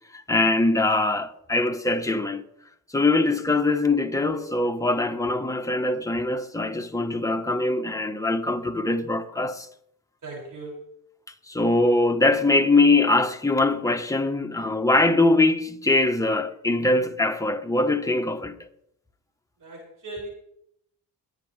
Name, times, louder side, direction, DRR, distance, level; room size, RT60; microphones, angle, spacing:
voice 1, 0.1-2.4 2.9-9.7 11.5-18.6, left 2 dB, 10° left, 1.6 m, -22 dB
voice 2, 10.2-10.9 19.6-20.3, right 2 dB, 50° right, 7.3 m, -38 dB
22.0 x 9.4 x 3.6 m
cardioid pair, 80°, 40 cm